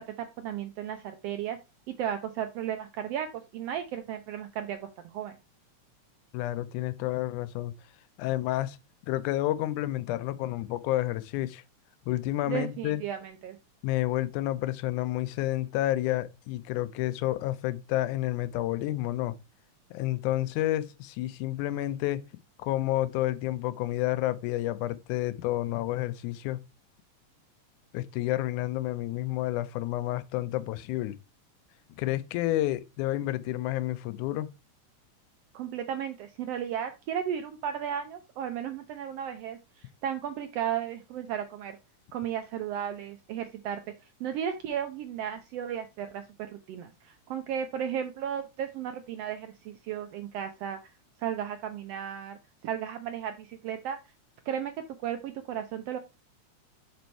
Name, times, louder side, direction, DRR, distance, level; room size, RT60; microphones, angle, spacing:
voice 1, 0.0-1.6 2.0-4.8 5.1-5.4 12.5-13.6 35.5-41.8 42.1-43.8 44.2-50.8 51.2-54.0 54.5-54.7 55.0-56.0, right 9 dB, 80° right, 1.4 m, -34 dB
voice 2, 6.3-7.7 8.2-8.8 9.1-11.6 12.1-13.0 13.8-19.4 19.9-22.2 22.6-26.6 27.9-31.2 32.0-34.5, left 15 dB, 85° left, 2.0 m, -30 dB
5.5 x 5.3 x 4.4 m
omnidirectional pair, 3.4 m